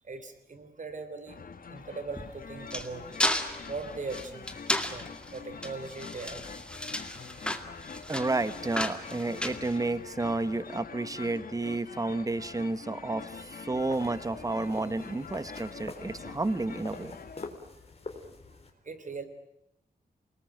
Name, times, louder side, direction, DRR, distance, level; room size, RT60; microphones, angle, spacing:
voice 1, 0.0-1.4 1.7-3.0 3.7-6.5 18.8-19.3, right 4 dB, 55° right, 10 dB, 3.6 m, -40 dB
sound 1, 1.3-17.5, left 5 dB, 65° left, 1.4 m, -45 dB
sound 2, 2.1-10.3, left 1 dB, 5° left, 2.2 m, -34 dB
voice 2, 8.1-17.2, right 2 dB, 20° right, 13 dB, 1.1 m, -31 dB
sound 3, 13.7-18.7, left 3 dB, 40° left, 3.9 m, -45 dB
28.5 x 19.5 x 9.2 m, 0.80 s
wide cardioid pair, 135°, 16 cm